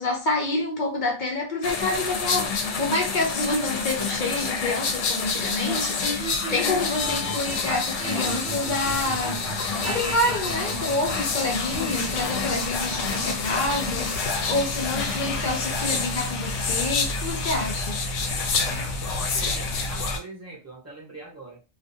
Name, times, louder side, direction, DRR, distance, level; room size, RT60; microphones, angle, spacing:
voice 1, 0.0-9.4 9.8-18.0, left 2 dB, 50° left, 0.6 m, -28 dB
sound 1, 1.6-20.2, left 4 dB, 75° left, 1.0 m, -28 dB
sound 2, 6.0-18.3, equal, 30° left, 1.0 m, -37 dB
voice 2, 18.7-21.6, right 2 dB, 15° right, 0.8 m, -43 dB
2.5 x 2.4 x 2.6 m
omnidirectional pair, 1.3 m